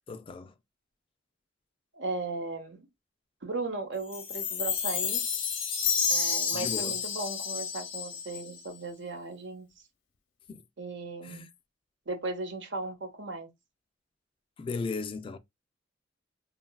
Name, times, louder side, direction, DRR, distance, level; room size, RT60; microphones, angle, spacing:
voice 1, 0.1-0.5 6.5-6.9 10.5-10.6 11.2-11.5 14.6-15.4, left 4 dB, 30° left, 0.3 m, -36 dB
voice 2, 1.9-2.9 3.4-5.2 6.1-9.7 10.8-11.5 12.1-13.5, right 3 dB, 65° right, 0.9 m, -36 dB
Chime, 4.1-8.6, left 6 dB, 80° left, 0.7 m, -30 dB
3.0 x 2.3 x 2.2 m
head